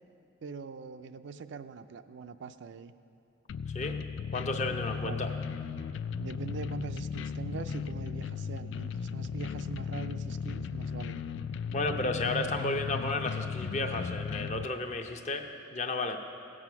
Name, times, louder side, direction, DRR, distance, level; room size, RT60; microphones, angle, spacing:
voice 1, 0.4-2.9 5.0-5.3 6.2-11.2, right 5 dB, 60° right, 10 dB, 0.4 m, -42 dB
sound 1, 3.5-14.7, left 6 dB, 65° left, 0.3 m, -36 dB
voice 2, 4.3-5.3 11.7-16.2, left 2 dB, 35° left, 5 dB, 0.7 m, -33 dB
16.0 x 7.7 x 5.8 m, 2.6 s
head